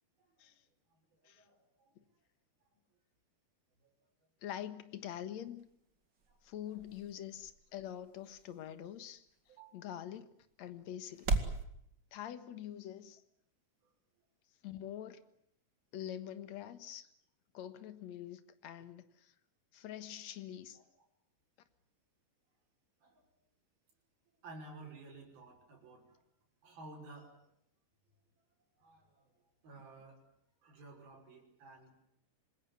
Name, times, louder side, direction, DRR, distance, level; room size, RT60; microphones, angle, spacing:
voice 1, 0.9-1.9 2.7-2.8 3.8-3.9 6.3-6.9 9.5-9.9 13.8-13.9 20.7-20.8 23.0-23.2 24.4-26.2 26.6-27.3 28.8-29.3 29.6-30.2 30.6-32.0, right 2 dB, 70° right, 7.8 m, -54 dB
voice 2, 4.4-5.7 6.4-9.3 9.7-10.3 10.6-11.4 12.1-13.2 14.6-15.2 15.9-17.1 17.5-19.3 19.7-20.8, left 11 dB, 60° left, 2.2 m, -45 dB
sound 1, 5.4-11.6, right 3 dB, 35° right, 2.4 m, -41 dB
26.5 x 21.0 x 9.6 m
omnidirectional pair, 4.5 m